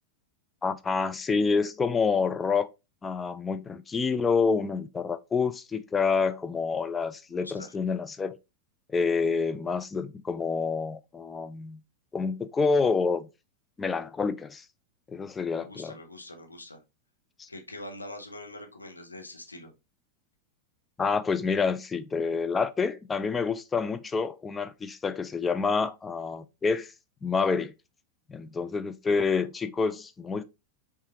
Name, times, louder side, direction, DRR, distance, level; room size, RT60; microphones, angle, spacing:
voice 1, 0.6-2.7 3.0-8.4 8.9-11.8 12.1-13.3 13.8-14.6 15.1-15.9 17.4-17.5 21.0-26.9 27.2-27.7 28.3-30.4, left 5 dB, 15° left, 0.4 m, -28 dB
voice 2, 7.3-7.7 15.6-16.8 17.5-19.7, left 1 dB, 80° left, 0.8 m, -43 dB
5.4 x 2.5 x 2.8 m
figure-of-eight pair, 90°, 0 cm